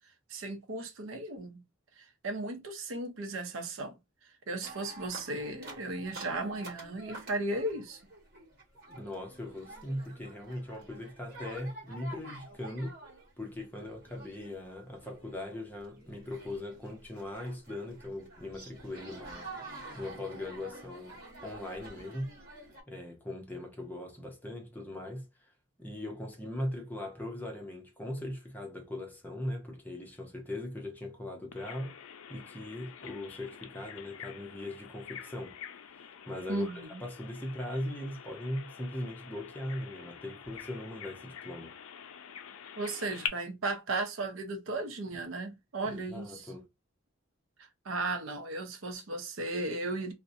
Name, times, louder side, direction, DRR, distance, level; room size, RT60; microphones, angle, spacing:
voice 1, 0.3-1.6 2.0-4.0 4.5-8.0 36.5-37.0 42.8-46.5 47.8-50.1, right 2 dB, 75° right, 0.6 m, -35 dB
sound 1, 4.6-22.8, right 2 dB, 45° right, 1.2 m, -49 dB
voice 2, 8.9-13.0 13.4-19.5 19.9-22.4 22.9-25.5 25.8-32.0 32.3-35.6 36.3-36.7 37.0-41.8 45.8-46.7, left 1 dB, 10° left, 0.5 m, -39 dB
Bird vocalization bird call bird song, 31.5-43.3, left 8 dB, 90° left, 0.4 m, -46 dB
2.4 x 2.0 x 2.5 m
head